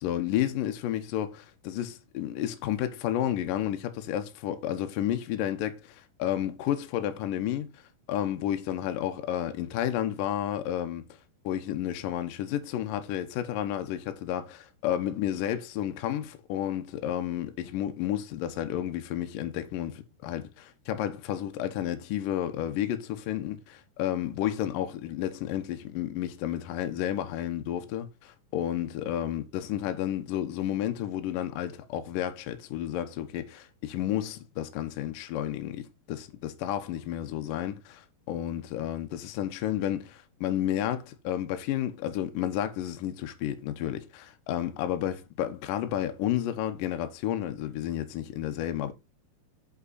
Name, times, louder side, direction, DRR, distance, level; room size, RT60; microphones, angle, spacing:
voice 1, 0.0-7.8 8.1-11.1 11.4-48.9, left 11 dB, 80° left, 2.0 m, -31 dB
7.5 x 5.5 x 4.1 m
omnidirectional pair, 5.2 m